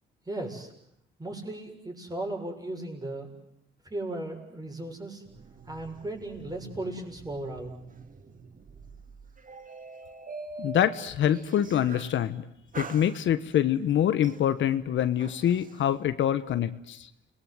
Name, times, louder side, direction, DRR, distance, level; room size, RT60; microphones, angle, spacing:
voice 1, 0.3-0.7 1.2-3.3 3.8-5.2 5.7-7.8, right 1 dB, 20° right, 2 dB, 6.5 m, -36 dB
sound 1, 5.3-12.2 12.7-13.7 14.2-15.8, right 4 dB, 45° right, 2.2 m, -45 dB
voice 2, 10.6-12.4 12.7-17.1, left 10 dB, 70° left, 12 dB, 1.2 m, -25 dB
29.0 x 20.5 x 7.9 m, 0.76 s
cardioid pair, 90°, 20 cm